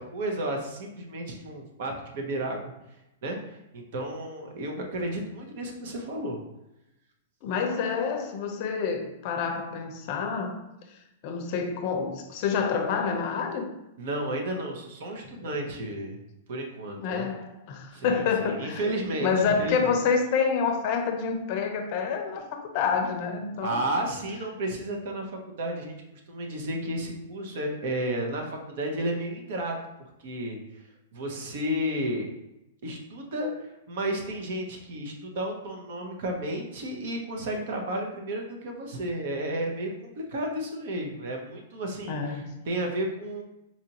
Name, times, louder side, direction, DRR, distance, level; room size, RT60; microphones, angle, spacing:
voice 1, 0.0-2.7 3.2-3.4 3.7-6.4 14.0-16.2 16.5-17.3 17.9-20.0 23.6-29.8 30.2-30.8 31.1-32.3 32.8-43.4, right 1 dB, 60° right, 2 dB, 0.8 m, -32 dB
voice 2, 7.4-10.6 11.2-13.7 17.0-18.8 19.2-23.8 42.1-42.5, left 5 dB, 45° left, 5 dB, 0.5 m, -28 dB
4.2 x 2.5 x 2.9 m, 0.91 s
hypercardioid pair, 145°, 0 cm